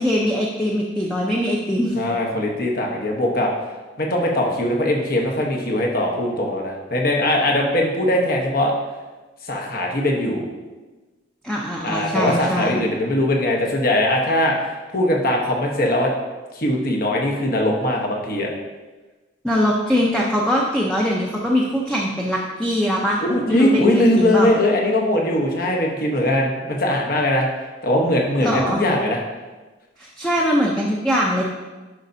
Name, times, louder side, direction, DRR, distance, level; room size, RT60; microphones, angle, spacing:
voice 1, 0.0-1.9 11.4-12.8 19.4-23.2 23.5-24.5 28.4-28.8 30.0-31.4, equal, 5° left, -3 dB, 0.6 m, -22 dB
voice 2, 1.9-3.5 4.0-8.7 9.4-10.4 11.8-16.1 16.5-18.5 23.2-27.5 27.8-29.2, left 1 dB, 50° left, 0 dB, 1.1 m, -20 dB
11.0 x 5.2 x 2.7 m, 1.2 s
head